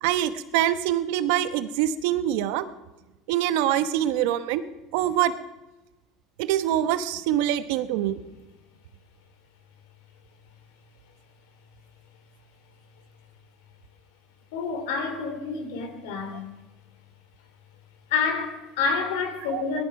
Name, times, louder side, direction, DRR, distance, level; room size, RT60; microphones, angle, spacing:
voice 1, 0.0-2.7 3.3-4.6 4.9-5.3 6.4-8.2 19.5-19.6, right 12 dB, 80° right, 1.0 m, -24 dB
voice 2, 14.5-16.4 18.1-19.8, left 5 dB, 85° left, 2.9 m, -28 dB
18.5 x 12.5 x 5.9 m
supercardioid pair, 120°, 0 cm